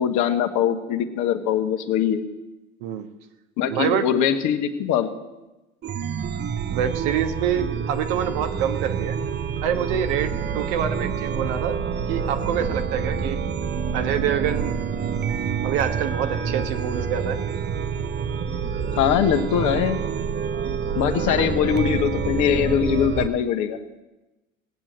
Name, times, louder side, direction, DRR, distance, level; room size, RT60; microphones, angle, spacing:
voice 1, 0.0-2.2 3.6-5.1 18.9-20.0 20.9-23.8, left 8 dB, 45° left, 7 dB, 1.5 m, -22 dB
voice 2, 3.7-4.1 6.7-9.2 9.6-11.8 12.1-13.4 13.9-14.8 15.6-17.4 21.3-21.5, right 9 dB, 55° right, 8 dB, 1.4 m, -26 dB
Chime, 5.8-23.3, right 6 dB, 25° right, 0.9 m, -27 dB
18.5 x 8.9 x 7.8 m, 1.1 s
figure-of-eight pair, 70°, 40 cm